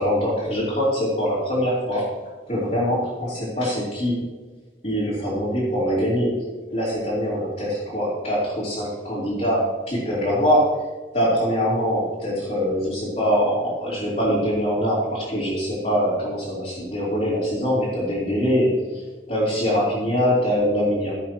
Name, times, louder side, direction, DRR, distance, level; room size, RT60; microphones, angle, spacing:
voice 1, 0.0-2.1 2.5-4.2 4.8-6.4 6.7-10.8 11.1-19.0 19.3-21.1, equal, 40° left, -10 dB, 3.6 m, -23 dB
17.0 x 8.0 x 3.1 m, 1.3 s
head